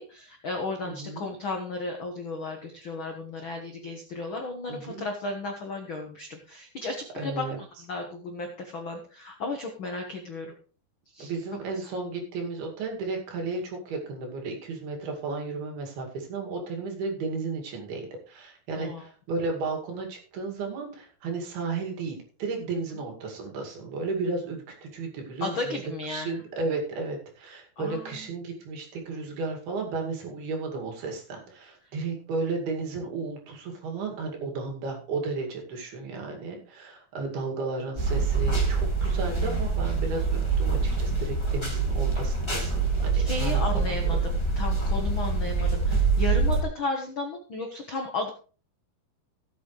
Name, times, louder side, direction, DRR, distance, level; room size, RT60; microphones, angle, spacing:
voice 1, 0.0-7.4 7.8-10.5 11.1-11.3 18.7-19.0 25.4-26.4 27.8-28.3 38.5-38.6 43.1-48.3, left 3 dB, 75° left, 3 dB, 1.1 m, -34 dB
voice 2, 0.8-1.3 4.7-5.1 7.2-7.6 11.2-25.8 26.1-44.2, right 3 dB, 80° right, 1 dB, 4.3 m, -34 dB
sound 1, 38.0-46.6, right 4 dB, 30° left, 0.4 m, -25 dB
16.5 x 8.1 x 3.2 m, 0.38 s
omnidirectional pair, 4.4 m